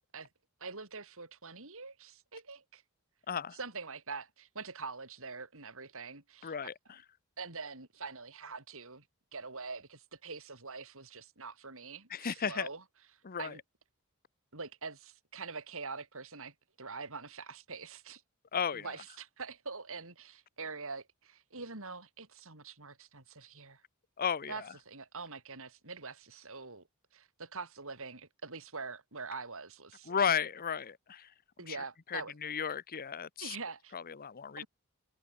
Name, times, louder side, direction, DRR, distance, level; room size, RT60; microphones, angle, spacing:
voice 1, 0.6-2.8 3.5-6.5 7.4-9.0 9.3-12.8 13.4-13.6 14.5-18.2 18.7-23.8 24.5-26.9 27.1-30.1 31.6-32.4 33.4-33.9 34.6-34.7, right 4 dB, 65° right, 6.4 m, -44 dB
voice 2, 3.3-3.6 6.4-6.7 12.1-12.7 13.2-13.5 18.5-18.9 24.2-24.6 30.1-31.3 31.7-31.8 32.1-33.6 33.9-34.6, left 7 dB, 40° left, 0.7 m, -34 dB
head